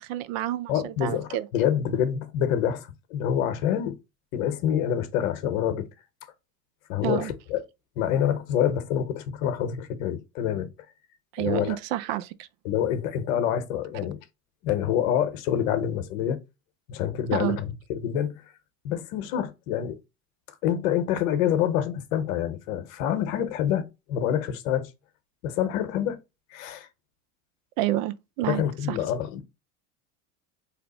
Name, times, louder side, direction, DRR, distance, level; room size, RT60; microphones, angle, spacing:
voice 1, 0.0-1.5 7.0-7.3 11.3-12.5 17.3-17.6 27.8-28.6 28.9-29.0, right 14 dB, 70° right, 0.5 m, -29 dB
voice 2, 0.7-4.0 4.3-5.9 6.9-7.6 8.0-10.7 11.4-11.8 12.6-14.2 14.6-16.4 16.9-18.4 18.8-20.0 20.6-24.9 25.4-26.2 26.5-26.9 28.4-29.4, left 10 dB, 75° left, 0.8 m, -27 dB
2.7 x 2.0 x 4.0 m
supercardioid pair, 105°, 41 cm